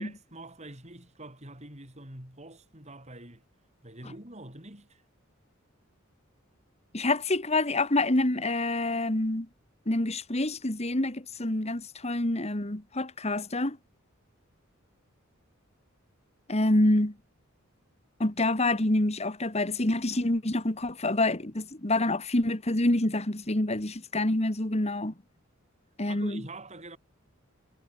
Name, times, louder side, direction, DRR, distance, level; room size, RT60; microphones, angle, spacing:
voice 1, 0.0-3.4 3.8-5.0 26.0-27.0, right 2 dB, 35° right, 6.1 m, -45 dB
voice 2, 6.9-9.5 9.9-13.8 16.5-17.1 18.2-25.1 26.0-26.4, left 2 dB, 30° left, 2.0 m, -27 dB
head